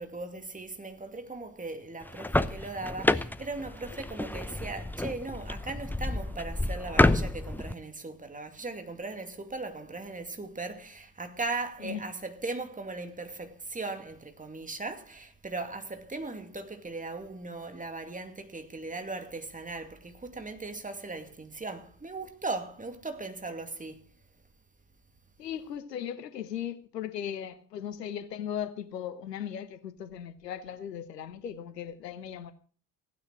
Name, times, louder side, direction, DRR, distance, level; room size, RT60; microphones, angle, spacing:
voice 1, 0.0-24.0, right 3 dB, 15° right, 2.3 m, -38 dB
sound 1, 2.0-7.7, left 2 dB, 5° left, 0.7 m, -29 dB
voice 2, 25.4-32.5, left 9 dB, 85° left, 1.0 m, -37 dB
15.5 x 9.6 x 6.2 m
figure-of-eight pair, 55°, 48 cm